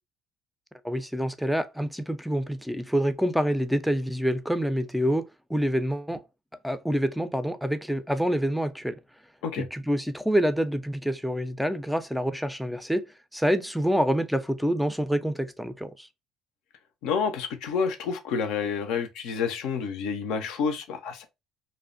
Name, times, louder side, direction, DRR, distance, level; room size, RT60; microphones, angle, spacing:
voice 1, 0.8-6.2 6.6-9.0 9.6-16.1, equal, ahead, 0.4 m, -27 dB
voice 2, 17.0-21.3, left 6 dB, 70° left, 0.5 m, -29 dB
2.6 x 2.1 x 2.4 m
hypercardioid pair, 65°, 0 cm